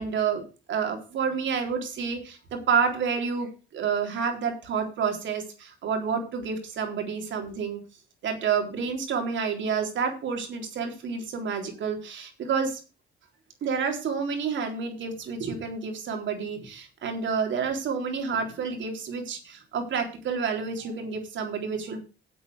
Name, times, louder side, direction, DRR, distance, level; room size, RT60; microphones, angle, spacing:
voice 1, 0.0-7.8 8.2-12.8 13.6-22.0, right 6 dB, 70° right, 4 dB, 3.8 m, -29 dB
9.0 x 8.0 x 6.2 m, 0.32 s
cardioid pair, 90°, 20 cm